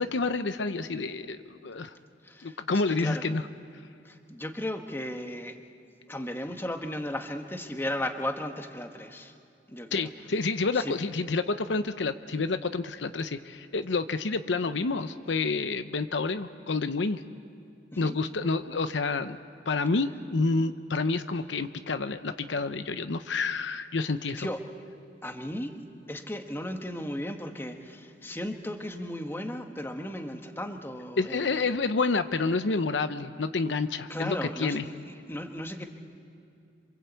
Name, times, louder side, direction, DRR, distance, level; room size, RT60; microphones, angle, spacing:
voice 1, 0.0-1.9 2.4-3.4 9.9-17.2 18.0-19.4 19.7-24.5 31.2-34.8, left 3 dB, 75° left, 10 dB, 0.8 m, -29 dB
voice 2, 2.2-2.6 2.9-3.3 4.0-5.6 6.1-9.3 9.7-10.1 10.8-10.9 17.9-18.2 24.4-24.6 25.2-31.7 34.1-34.9 35.3-35.8, left 1 dB, 15° left, 5 dB, 1.4 m, -35 dB
27.5 x 24.5 x 8.3 m, 2.6 s
head